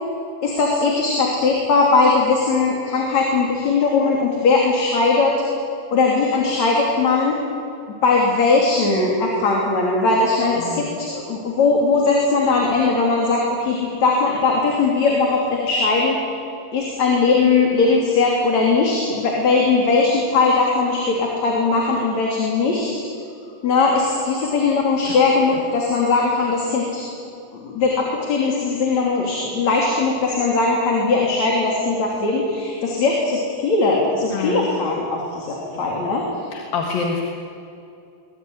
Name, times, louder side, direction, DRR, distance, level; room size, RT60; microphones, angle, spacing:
voice 1, 0.4-5.4 5.9-7.4 8.0-16.2 16.7-22.9 23.6-27.0 27.5-36.2, left 3 dB, 55° left, -2 dB, 4.3 m, -19 dB
voice 2, 34.3-34.7 36.5-37.2, left 5 dB, 80° left, 1 dB, 3.6 m, -26 dB
23.5 x 21.0 x 9.6 m, 2.6 s
omnidirectional pair, 4.0 m